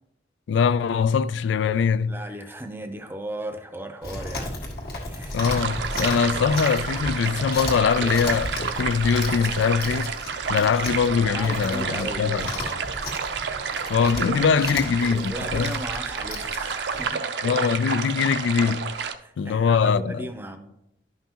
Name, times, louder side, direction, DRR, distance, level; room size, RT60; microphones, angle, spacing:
voice 1, 0.5-2.2 5.3-10.1 10.5-12.5 13.9-15.7 17.4-18.9 19.4-20.3, left 6 dB, 85° left, 0.3 m, -22 dB
voice 2, 2.0-4.5 5.0-5.5 11.3-12.8 15.3-17.4 18.2-18.4 19.2-20.7, right 1 dB, 10° right, 0.6 m, -36 dB
Chewing mastication, 4.0-17.1, left 1 dB, 55° left, 1.8 m, -34 dB
sound 1, 5.4-19.1, right 6 dB, 70° right, 0.5 m, -30 dB
11.0 x 5.6 x 2.9 m
head